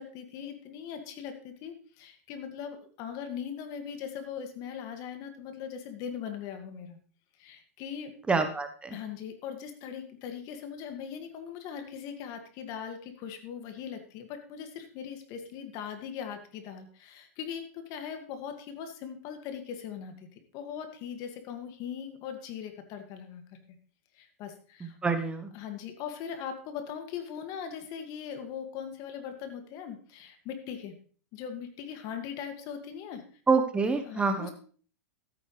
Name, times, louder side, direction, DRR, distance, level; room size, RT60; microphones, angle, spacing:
voice 1, 0.0-7.0 7.4-8.1 8.9-23.6 24.1-25.0 25.5-30.9 31.3-33.2 34.1-34.5, left 8 dB, 50° left, 6 dB, 2.1 m, -40 dB
voice 2, 8.3-9.0 25.0-25.5 33.5-34.5, right 4 dB, 15° right, 7 dB, 1.1 m, -26 dB
13.5 x 9.2 x 3.3 m, 0.42 s
hypercardioid pair, 115°, 8 cm